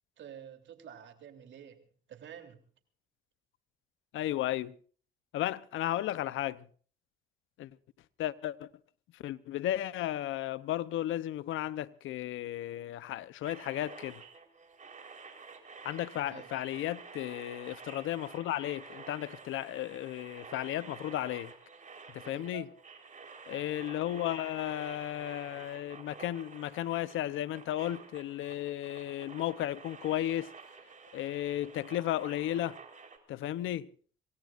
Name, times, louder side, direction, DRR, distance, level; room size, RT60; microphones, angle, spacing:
voice 1, 0.2-1.8 2.1-2.6 16.3-16.5 22.2-22.7, right 9 dB, 70° right, 3.3 m, -49 dB
voice 2, 4.1-4.7 5.3-6.6 7.6-7.7 8.2-8.7 9.2-14.2 15.8-21.5 22.1-22.7 23.5-30.5 31.1-32.8 33.3-33.9, left 13 dB, 80° left, 0.8 m, -34 dB
sound 1, 13.4-33.2, right 5 dB, 40° right, 4.2 m, -50 dB
26.0 x 18.5 x 2.6 m
cardioid pair, 90°, 20 cm